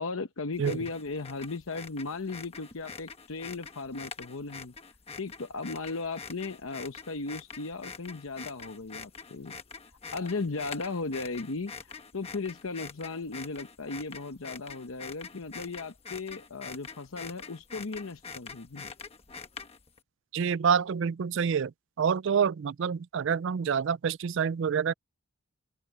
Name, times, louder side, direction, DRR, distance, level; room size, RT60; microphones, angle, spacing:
voice 1, 0.0-4.7 5.2-9.6 10.1-18.9, left 3 dB, 70° left, 0.9 m, -36 dB
sound 1, 0.5-20.0, left 5 dB, 25° left, 1.2 m, -45 dB
voice 2, 20.3-21.7 22.0-24.9, right 7 dB, 55° right, 0.3 m, -27 dB
head